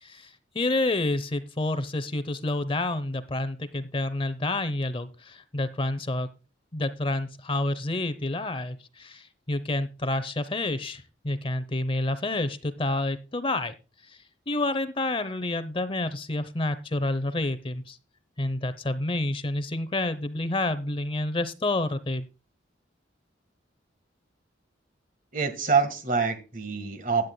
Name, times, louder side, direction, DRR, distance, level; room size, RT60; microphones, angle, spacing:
voice 1, 0.0-6.3 6.7-13.7 14.1-14.2 14.5-18.0 18.4-22.3, left 2 dB, 30° left, 12 dB, 0.8 m, -29 dB
voice 2, 25.3-27.3, right 5 dB, 45° right, 10 dB, 1.6 m, -26 dB
16.5 x 9.5 x 2.3 m, 0.30 s
head